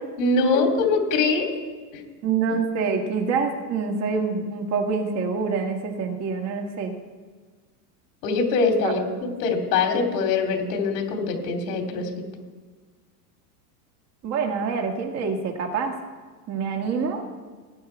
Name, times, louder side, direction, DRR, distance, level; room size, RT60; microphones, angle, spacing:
voice 1, 0.2-1.5 1.9-2.1 8.2-12.1, left 4 dB, 70° left, 3 dB, 2.8 m, -23 dB
voice 2, 2.2-6.9 8.8-8.9 14.2-16.0 16.5-17.2, right 5 dB, 30° right, 3 dB, 1.8 m, -26 dB
18.0 x 8.8 x 4.5 m, 1.4 s
supercardioid pair, 145°, 49 cm